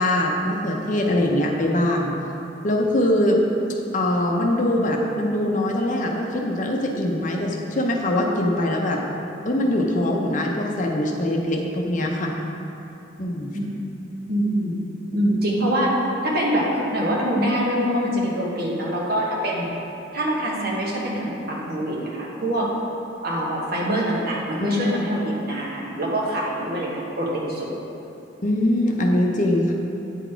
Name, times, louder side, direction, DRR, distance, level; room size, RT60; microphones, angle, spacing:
voice 1, 0.0-2.1 2.6-3.4 3.9-9.0 9.4-12.3 13.2-13.5 24.6-24.8 28.4-29.7, left 1 dB, 40° left, 0 dB, 0.7 m, -22 dB
voice 2, 13.5-14.8 15.1-16.0 16.2-19.7 20.1-22.7 23.2-27.8, equal, 55° right, -4 dB, 1.3 m, -24 dB
9.0 x 4.1 x 4.5 m, 2.8 s
head